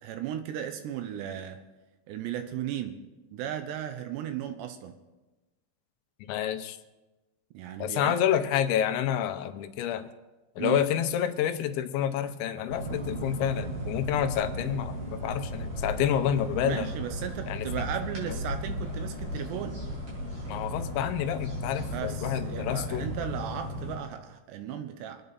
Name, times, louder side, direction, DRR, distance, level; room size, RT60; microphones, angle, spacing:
voice 1, 0.0-1.6 2.1-3.0 3.3-5.0 7.5-8.2 10.6-10.9 16.6-19.8 21.8-25.2, right 10 dB, 75° right, 8 dB, 2.8 m, -36 dB
voice 2, 6.2-6.8 7.8-10.1 10.6-16.9 17.5-17.7 20.5-23.1, left 10 dB, 80° left, 8 dB, 3.0 m, -28 dB
sound 1, 12.7-23.9, equal, 40° right, 4.7 m, -35 dB
25.0 x 9.5 x 4.1 m, 1.1 s
omnidirectional pair, 5.3 m